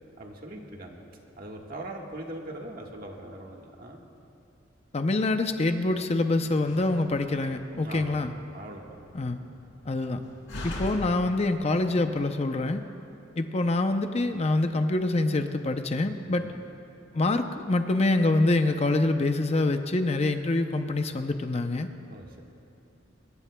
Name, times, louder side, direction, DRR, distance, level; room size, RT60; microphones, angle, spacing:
voice 1, 0.2-1.0 1.4-4.0 7.8-8.2 8.5-9.0 16.3-16.7 22.1-22.4, right 1 dB, 50° right, 0 dB, 1.6 m, -41 dB
voice 2, 4.9-8.3 9.1-9.4 9.9-10.2 10.6-12.8 13.4-16.4 17.1-21.9, left 2 dB, 35° left, 7 dB, 0.6 m, -25 dB
Slam, 6.6-12.1, left 1 dB, 75° left, 3.1 m, -42 dB
23.0 x 20.5 x 2.3 m, 2.9 s
head